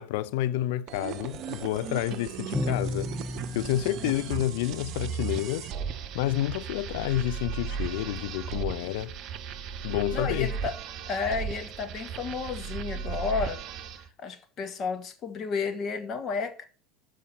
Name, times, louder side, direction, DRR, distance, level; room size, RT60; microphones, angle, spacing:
voice 1, 0.0-3.1 3.5-5.7 6.1-9.1 9.8-10.5, left 14 dB, 65° left, 0.4 m, -29 dB
sound 1, 0.9-14.1, right 7 dB, 45° right, 0.8 m, -36 dB
Bowed string instrument, 2.5-5.4, left 2 dB, ahead, 1.0 m, -34 dB
voice 2, 10.1-10.8 11.1-13.6 14.2-16.7, left 5 dB, 40° left, 1.3 m, -32 dB
7.0 x 4.9 x 6.6 m
figure-of-eight pair, 75°, 0 cm